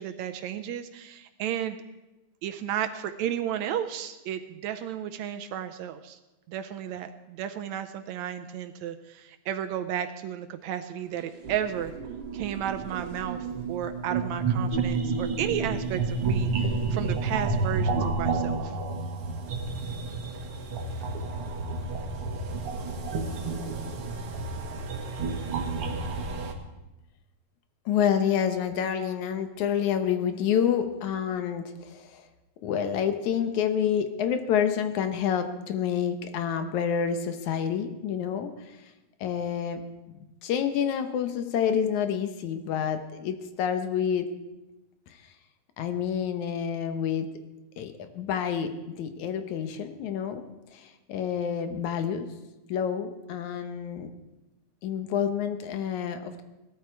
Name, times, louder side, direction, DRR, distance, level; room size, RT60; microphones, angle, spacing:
voice 1, 0.0-1.8 2.4-6.2 6.5-11.9 12.3-18.8, right 10 dB, 75° right, 8 dB, 1.8 m, -33 dB
sound 1, 11.2-26.5, right 4 dB, 55° right, 1.9 m, -30 dB
voice 2, 27.9-32.3 32.6-38.8 39.2-39.8 40.1-44.3 45.1-45.2 45.8-47.3 47.8-50.5 50.7-52.3 52.7-54.1 54.8-56.4, left 8 dB, 75° left, 8 dB, 2.3 m, -28 dB
18.0 x 13.0 x 4.6 m, 1.0 s
omnidirectional pair, 3.5 m